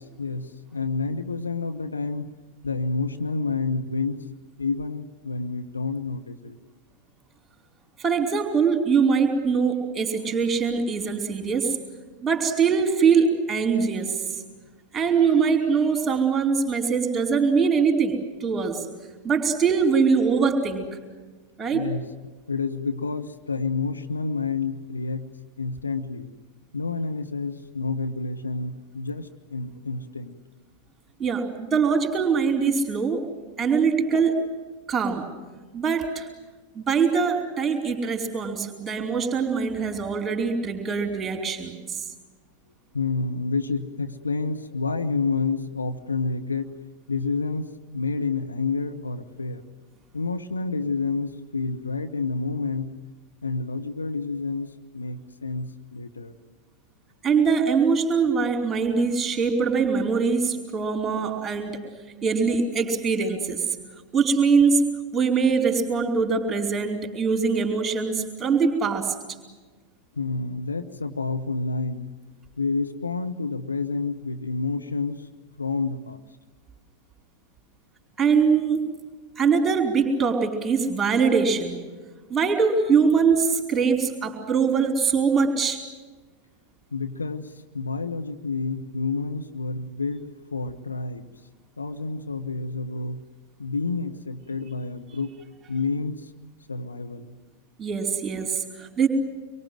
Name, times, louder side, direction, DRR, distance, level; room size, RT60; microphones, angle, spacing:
voice 1, 0.0-2.3 2.6-4.2 4.6-6.6 21.7-22.1 22.5-25.3 25.6-26.3 26.7-30.3 42.9-46.7 47.1-49.6 50.1-52.9 53.4-54.7 54.9-56.3 70.2-72.1 72.6-75.2 75.6-76.2 86.9-90.3 90.5-91.2 91.8-93.2 93.6-95.3 95.7-96.2 96.7-97.4, left 4 dB, 80° left, 5 dB, 1.3 m, -29 dB
voice 2, 8.0-11.7 12.2-14.1 14.9-18.8 19.2-20.9 21.6-21.8 31.2-33.2 33.6-34.4 34.9-35.3 35.7-36.3 36.7-41.7 57.2-61.8 62.2-63.6 64.1-69.1 78.2-78.9 79.4-81.8 82.3-85.8 97.8-99.1, right 5 dB, 15° right, 3 dB, 4.7 m, -22 dB
26.0 x 23.5 x 7.8 m, 1.3 s
figure-of-eight pair, 90°, 0 cm